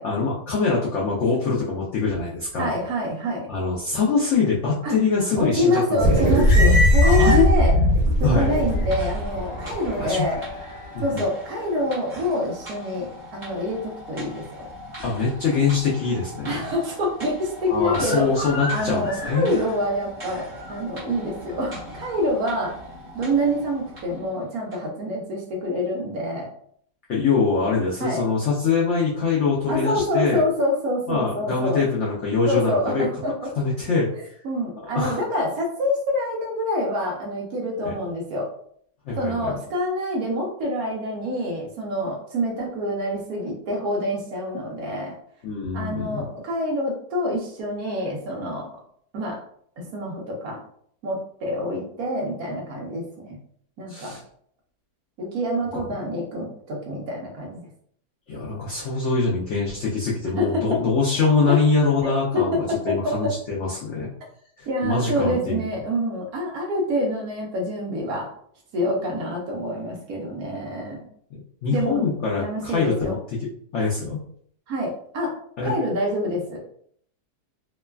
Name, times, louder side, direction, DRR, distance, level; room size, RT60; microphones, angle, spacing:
voice 1, 0.0-2.7 3.5-6.0 7.0-7.4 8.2-8.5 10.0-10.3 10.9-11.2 15.0-16.6 17.7-19.5 27.1-30.4 31.1-33.0 33.6-34.1 34.9-35.2 37.8-37.9 39.1-39.5 45.4-46.2 53.9-54.2 55.7-55.9 58.3-64.1 64.6-65.7 71.6-73.2 73.7-74.2 75.6-75.7, left 4 dB, 80° left, -4 dB, 0.6 m, -23 dB
voice 2, 2.6-3.5 4.8-5.0 5.4-7.8 8.2-10.4 11.0-14.7 16.4-22.7 23.1-26.5 28.0-28.3 29.7-31.8 32.5-33.5 34.4-38.5 39.1-45.2 45.7-48.7 49.1-49.4 49.8-50.6 51.0-53.4 53.8-54.2 55.2-57.5 60.4-60.8 61.2-61.6 62.0-63.3 64.7-68.3 68.7-71.1 71.7-72.0 72.4-73.1 74.7-75.4 75.6-76.6, equal, 65° right, -1 dB, 1.1 m, -26 dB
sound 1, 6.0-10.7, left 1 dB, 90° right, 1.4 m, -19 dB
sound 2, 6.1-7.9 8.4-24.3, equal, 60° left, 1.0 m, -34 dB
sound 3, 8.3-24.3 24.7-24.8, left 1 dB, 30° right, 1.1 m, -41 dB
3.1 x 2.2 x 2.2 m, 0.63 s
omnidirectional pair, 1.8 m